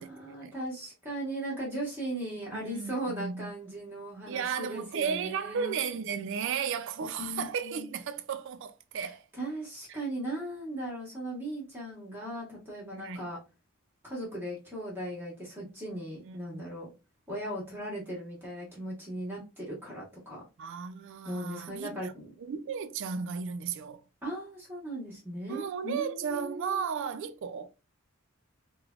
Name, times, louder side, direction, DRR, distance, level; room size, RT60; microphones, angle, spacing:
voice 1, 0.0-5.7 7.0-7.9 8.9-9.1 9.3-13.4 14.0-16.9 17.3-20.4 21.2-22.3 24.2-26.8, right 1 dB, 10° right, 0.9 m, -38 dB
voice 2, 2.5-3.5 4.3-9.2 9.9-10.0 12.9-13.2 16.2-16.8 20.6-22.1 22.4-24.0 25.5-27.7, right 6 dB, 60° right, 0.4 m, -34 dB
3.2 x 2.1 x 2.3 m
head